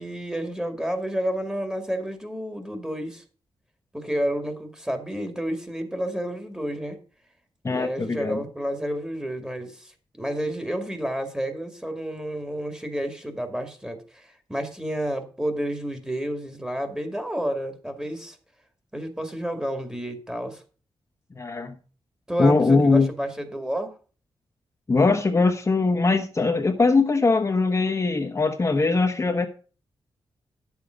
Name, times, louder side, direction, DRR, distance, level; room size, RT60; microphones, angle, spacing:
voice 1, 0.0-3.2 3.9-7.0 7.7-18.4 18.9-20.6 22.3-23.9, equal, 10° right, 7 dB, 2.2 m, -30 dB
voice 2, 7.6-8.4 21.4-21.7 22.4-23.1 24.9-29.5, left 3 dB, 30° left, 4 dB, 1.1 m, -21 dB
10.0 x 7.1 x 5.1 m, 0.38 s
cardioid pair, 85°, 9 cm